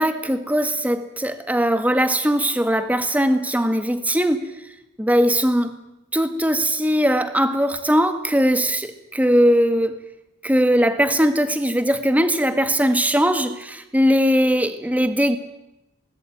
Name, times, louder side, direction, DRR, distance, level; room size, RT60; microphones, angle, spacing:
voice 1, 0.0-4.5 5.0-5.7 6.1-10.0 10.4-13.5 13.9-15.4, equal, 10° right, 9 dB, 1.9 m, -20 dB
24.0 x 20.0 x 9.3 m, 0.91 s
head